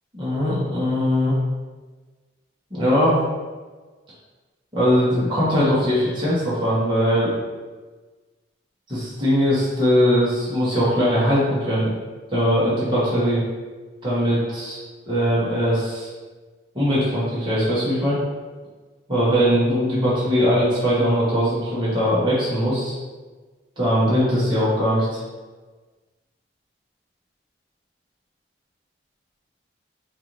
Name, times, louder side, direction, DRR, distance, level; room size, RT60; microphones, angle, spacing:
voice 1, 0.1-1.3 2.7-3.2 4.7-7.3 8.9-11.9 12.3-13.4 14.0-14.8 15.0-16.1 16.7-18.2 19.1-22.9 23.8-25.2, equal, 25° right, -9 dB, 1.3 m, -20 dB
4.5 x 2.6 x 3.1 m, 1.3 s
head